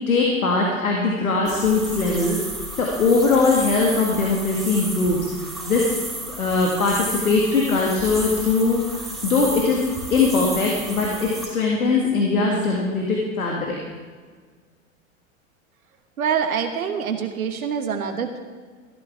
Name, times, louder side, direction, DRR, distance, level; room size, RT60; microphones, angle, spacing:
voice 1, 0.1-2.4 2.8-5.3 5.7-5.9 6.4-9.8 10.1-13.8, left 3 dB, 90° left, -1 dB, 2.0 m, -21 dB
sound 1, 1.4-11.5, right 1 dB, ahead, 3.3 m, -33 dB
voice 2, 16.2-18.4, right 7 dB, 85° right, 6 dB, 1.4 m, -25 dB
14.5 x 13.0 x 3.7 m, 1.5 s
hypercardioid pair, 100°, 42 cm